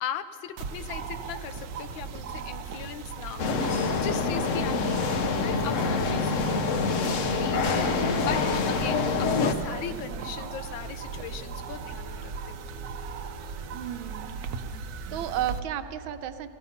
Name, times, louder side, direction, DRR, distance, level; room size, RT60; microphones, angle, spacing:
voice 1, 0.0-8.4 8.7-12.7, left 9 dB, 80° left, 11 dB, 1.4 m, -38 dB
sound 1, 0.6-15.6, right 5 dB, 65° right, 1.0 m, -38 dB
sound 2, 3.4-9.5, left 4 dB, 55° left, 0.8 m, -26 dB
voice 2, 13.7-14.4 15.1-16.5, right 11 dB, 85° right, 9 dB, 1.5 m, -33 dB
16.5 x 15.5 x 5.7 m, 2.3 s
omnidirectional pair, 2.2 m